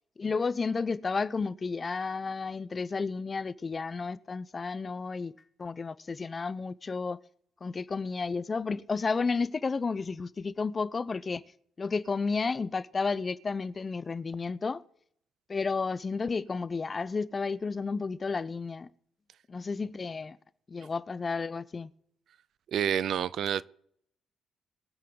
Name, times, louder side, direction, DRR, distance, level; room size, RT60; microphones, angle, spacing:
voice 1, 0.2-5.3 5.6-7.2 7.6-11.4 11.8-14.8 15.5-18.9 19.5-20.4 20.7-21.9, left 4 dB, 35° left, 0.5 m, -32 dB
voice 2, 22.7-23.6, right 9 dB, 65° right, 0.4 m, -28 dB
22.5 x 7.5 x 3.8 m
cardioid pair, 90°, 0 cm